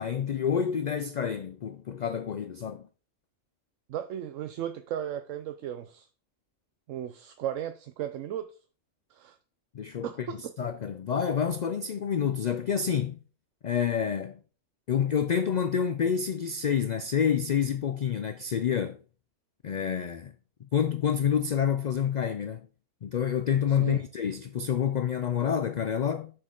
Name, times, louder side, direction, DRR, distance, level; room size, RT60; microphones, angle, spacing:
voice 1, 0.0-2.8 9.7-13.2 13.6-14.4 14.9-19.0 19.6-20.3 20.7-22.6 23.0-26.3, left 8 dB, 70° left, 0.4 m, -28 dB
voice 2, 3.9-6.1 6.9-8.5 9.1-9.4 10.0-10.5 23.7-24.0, right 10 dB, 85° right, 1.0 m, -35 dB
6.5 x 6.4 x 3.8 m
omnidirectional pair, 1.3 m